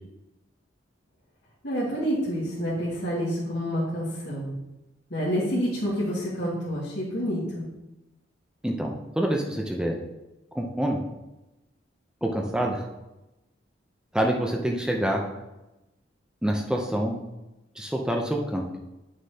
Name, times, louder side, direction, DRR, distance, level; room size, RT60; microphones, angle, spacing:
voice 1, 1.6-4.5 5.1-7.7, equal, 60° left, -7 dB, 2.0 m, -28 dB
voice 2, 8.6-10.0 10.5-11.0 12.2-12.9 14.1-15.2 16.4-17.2 17.8-18.6, right 1 dB, 5° right, 0 dB, 0.5 m, -26 dB
9.5 x 6.3 x 2.8 m, 0.98 s
head